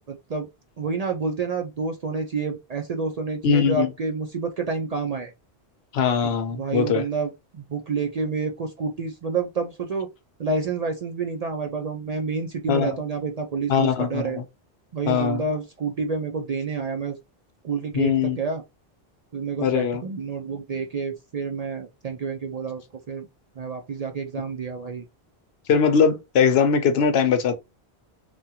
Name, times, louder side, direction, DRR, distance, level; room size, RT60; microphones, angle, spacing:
voice 1, 0.1-0.5 0.8-5.3 6.2-10.1 10.4-14.4 14.9-17.2 17.6-18.6 19.3-23.3 23.6-25.0, right 4 dB, 50° right, 0.5 m, -29 dB
voice 2, 3.4-3.9 5.9-7.0 12.7-13.0 13.7-14.2 15.1-15.4 17.9-18.4 19.6-20.0 25.7-27.5, left 6 dB, 75° left, 0.9 m, -21 dB
3.4 x 2.3 x 2.7 m
omnidirectional pair, 1.1 m